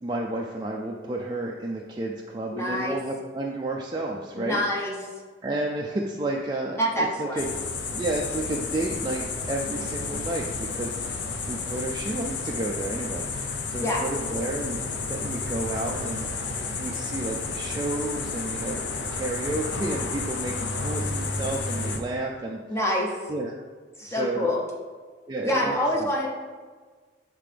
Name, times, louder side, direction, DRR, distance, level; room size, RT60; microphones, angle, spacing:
voice 1, 0.0-4.6 5.4-7.5 7.9-14.8 15.1-16.3 16.8-18.8 19.1-22.6 23.3-23.5 24.0-24.6 25.3-26.1, right 2 dB, 25° right, -1 dB, 0.3 m, -31 dB
voice 2, 2.5-3.0 4.3-5.0 6.8-7.4 13.8-14.0 22.7-23.1 24.0-24.6 25.4-26.3, left 1 dB, 15° left, -2 dB, 0.7 m, -26 dB
sound 1, 7.4-22.0, left 4 dB, 70° left, 0.6 m, -31 dB
7.6 x 3.7 x 3.4 m, 1.5 s
head